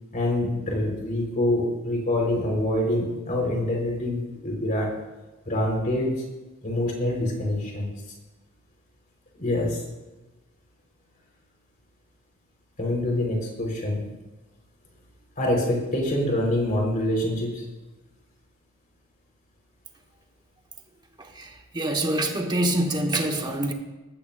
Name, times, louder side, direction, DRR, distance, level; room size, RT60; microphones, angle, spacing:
voice 1, 0.1-4.9 5.5-6.2 6.6-7.9 9.4-9.8 12.8-14.0 15.4-17.6, left 1 dB, 40° left, 4.3 m, -25 dB
voice 2, 21.3-23.7, right 1 dB, 20° right, 1.3 m, -25 dB
19.0 x 14.5 x 2.6 m
head